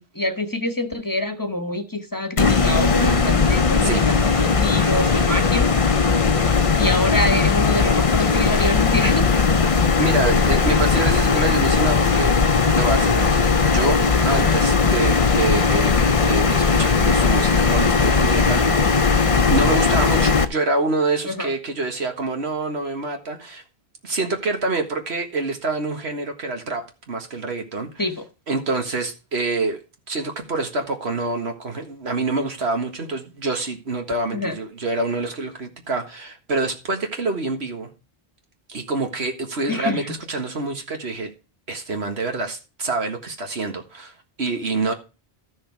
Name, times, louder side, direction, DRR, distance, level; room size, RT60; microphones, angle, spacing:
voice 1, 0.0-6.1 6.8-9.3 21.2-21.5 28.0-28.2 34.3-34.6 39.7-40.2, left 1 dB, 20° left, 1.1 m, -26 dB
sound 1, 2.4-20.4, left 5 dB, 35° left, 0.7 m, -18 dB
voice 2, 10.0-12.3 12.8-14.0 14.2-19.2 19.5-23.6 24.0-27.9 28.5-29.8 30.1-37.9 38.7-41.3 41.7-44.9, right 3 dB, 90° right, 1.9 m, -26 dB
13.0 x 6.5 x 4.7 m
omnidirectional pair, 1.1 m